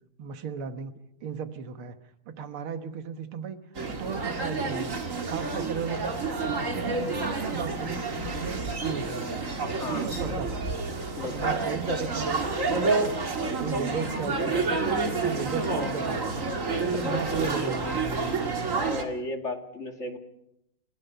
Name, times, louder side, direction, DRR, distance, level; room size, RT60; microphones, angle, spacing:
voice 1, 0.2-0.9 1.2-2.0 2.3-3.6 3.9-5.0 5.3-8.0 8.3-9.3 9.8-10.6 11.2-13.1 13.6-14.9 15.2-16.5 16.8-18.1, right 7 dB, 85° right, 9 dB, 2.2 m, -35 dB
sound 1, 3.8-19.0, right 3 dB, 40° right, 2.4 m, -29 dB
voice 2, 9.8-10.1 11.2-11.6 16.9-17.4 18.7-20.2, left 2 dB, 35° left, 5 dB, 2.3 m, -35 dB
30.0 x 16.0 x 5.7 m, 0.83 s
omnidirectional pair, 2.3 m